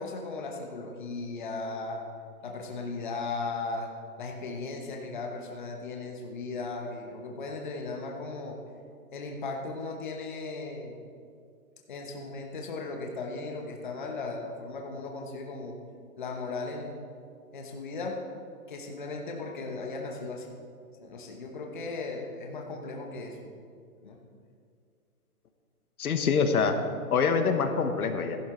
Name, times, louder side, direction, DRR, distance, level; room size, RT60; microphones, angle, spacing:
voice 1, 0.0-2.0 2.4-3.9 4.2-8.6 9.1-11.0 11.9-15.8 16.2-17.0 17.5-18.2 18.7-20.5 21.0-23.5 24.0-24.2, left 3 dB, 30° left, 1 dB, 0.9 m, -37 dB
voice 2, 26.0-26.7 27.1-28.4, left 5 dB, 70° left, 7 dB, 1.2 m, -25 dB
13.5 x 11.5 x 3.8 m, 2.2 s
hypercardioid pair, 180°, 46 cm